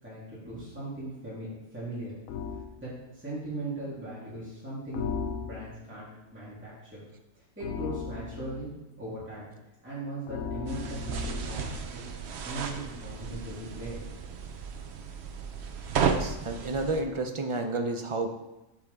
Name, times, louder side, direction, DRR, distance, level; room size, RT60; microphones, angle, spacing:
voice 1, 0.0-2.2 2.8-5.1 5.4-7.0 7.3-8.7 9.0-9.5 9.8-12.0 12.4-14.0, right 1 dB, 10° right, -10 dB, 2.6 m, -39 dB
sound 1, 2.3-2.7 4.9-5.9 7.6-8.7 10.3-11.6, left 6 dB, 80° left, 1.1 m, -36 dB
sound 2, 10.7-17.0, right 6 dB, 60° right, 0.9 m, -34 dB
voice 2, 16.0-18.3, right 2 dB, 35° right, 4 dB, 0.5 m, -31 dB
8.2 x 6.3 x 3.6 m, 0.94 s
omnidirectional pair, 1.4 m